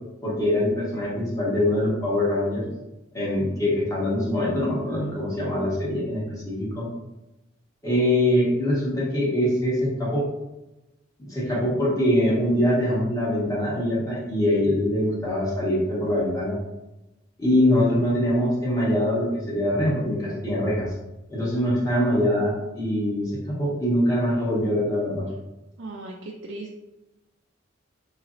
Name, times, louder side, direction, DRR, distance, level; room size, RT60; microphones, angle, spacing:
voice 1, 0.2-2.6 3.1-6.9 7.8-10.2 11.2-16.6 17.4-20.9 21.3-25.3, left 1 dB, 20° left, -7 dB, 1.3 m, -23 dB
voice 2, 25.8-26.8, right 2 dB, 70° right, -1 dB, 0.4 m, -37 dB
3.9 x 3.0 x 2.5 m, 0.97 s
head